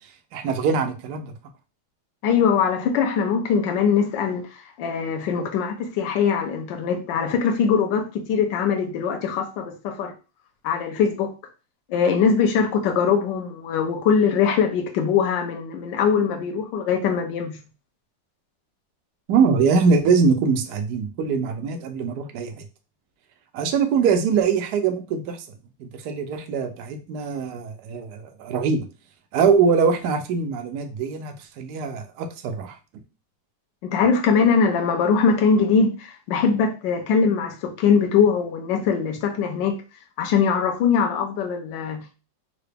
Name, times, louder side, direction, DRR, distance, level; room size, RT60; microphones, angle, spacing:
voice 1, 0.3-1.3 19.3-22.6 23.5-25.4 25.8-28.8 29.3-32.8, right 5 dB, 70° right, 1.0 m, -22 dB
voice 2, 2.2-10.1 10.6-11.3 11.9-17.6 33.8-39.8 40.2-42.2, left 6 dB, 80° left, 1.3 m, -22 dB
3.8 x 2.1 x 3.3 m
omnidirectional pair, 2.0 m